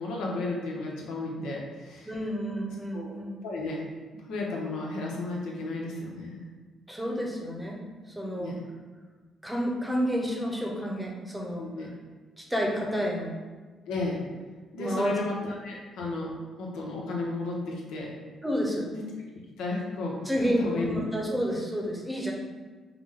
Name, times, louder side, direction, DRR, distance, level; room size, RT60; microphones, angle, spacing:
voice 1, 0.0-2.1 2.9-3.1 3.4-3.8 4.1-6.4 8.4-8.5 11.6-11.9 13.9-14.2 14.7-16.3 16.6-18.1 18.9-19.0 19.6-20.3 20.6-21.0, left 2 dB, 90° left, -2 dB, 0.9 m, -33 dB
voice 2, 2.0-3.3 6.9-7.9 8.1-8.6 9.4-11.7 12.4-13.3 14.8-15.2 18.4-18.9 20.2-22.3, equal, 5° right, -1 dB, 0.8 m, -30 dB
4.8 x 2.2 x 3.7 m, 1.3 s
cardioid pair, 90°, 0 cm